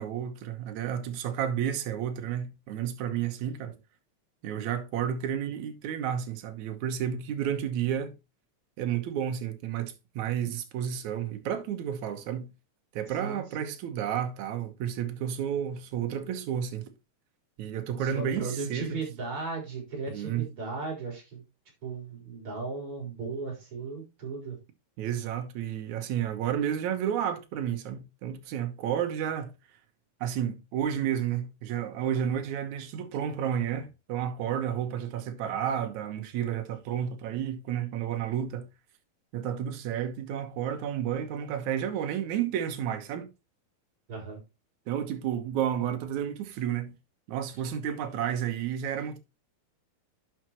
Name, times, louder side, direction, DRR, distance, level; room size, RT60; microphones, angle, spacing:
voice 1, 0.0-3.7 4.4-8.1 8.8-12.5 12.9-16.9 17.6-19.0 20.1-20.5 25.0-29.5 30.2-38.7 39.3-43.3 44.9-46.9 47.3-49.2, right 9 dB, 65° right, 2.2 m, -31 dB
voice 2, 13.2-13.7 18.0-21.4 21.8-24.6 44.1-44.4, right 4 dB, 35° right, 4.8 m, -36 dB
11.0 x 5.8 x 3.0 m
omnidirectional pair, 4.3 m